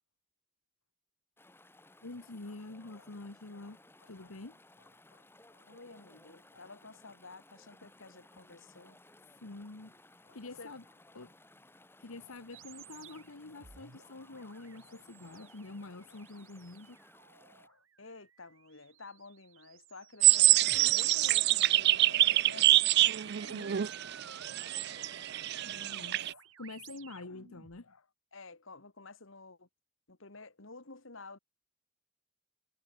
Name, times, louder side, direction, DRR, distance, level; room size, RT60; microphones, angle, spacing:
Chatter / Stream, 1.4-17.7, left 2 dB, 10° left, 2.8 m, -60 dB
voice 1, 2.0-5.7 6.5-6.7 9.4-9.9 10.2-10.8 11.1-11.3 12.0-17.0 17.4-17.8 23.2-24.0 24.5-24.7 25.0-25.2 25.6-28.1, left 2 dB, 80° left, 1.4 m, -48 dB
voice 2, 5.6-9.0 10.6-10.7 18.0-22.8 24.7-25.1 28.3-29.7 30.1-31.4, left 3 dB, 60° left, 2.0 m, -52 dB
sound 1, 12.5-27.8, right 8 dB, 65° right, 2.5 m, -54 dB
sound 2, 20.2-26.3, right 15 dB, 50° right, 0.4 m, -26 dB
head